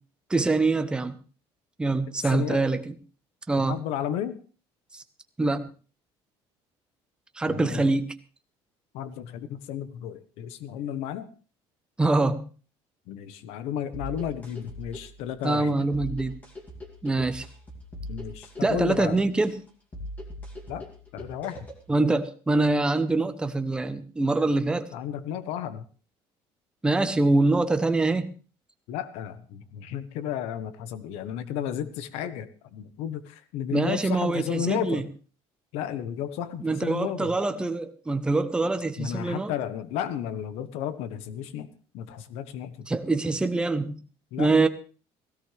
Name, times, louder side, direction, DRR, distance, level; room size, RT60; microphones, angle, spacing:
voice 1, 0.3-1.2 1.8-2.9 3.5-3.8 4.9-5.0 5.4-5.7 7.4-8.1 12.0-12.5 15.4-16.4 17.0-17.5 18.6-19.6 21.9-24.9 26.8-28.3 33.7-35.1 36.6-39.5 42.9-44.0 44.4-44.7, right 2 dB, 10° right, 0.8 m, -24 dB
voice 2, 2.2-2.6 3.6-4.4 7.5-7.8 8.9-11.3 13.1-15.9 18.1-19.2 20.7-20.9 21.1-21.7 24.9-25.8 28.9-35.0 35.7-37.3 39.0-41.7 41.9-42.9 44.3-44.5, left 9 dB, 80° left, 1.2 m, -33 dB
sound 1, 13.9-21.9, equal, 15° left, 2.5 m, -41 dB
17.0 x 16.5 x 3.4 m
cardioid pair, 175°, 11 cm